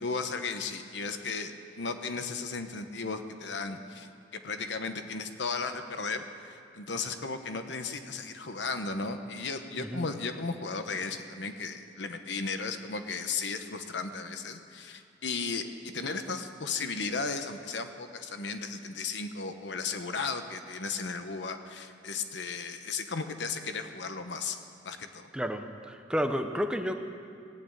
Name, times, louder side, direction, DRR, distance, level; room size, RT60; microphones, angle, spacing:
voice 1, 0.0-24.6 24.8-25.3, left 4 dB, 70° left, 7 dB, 1.0 m, -35 dB
voice 2, 25.3-26.9, equal, 5° right, 6 dB, 0.7 m, -31 dB
17.5 x 8.8 x 8.8 m, 2.4 s
head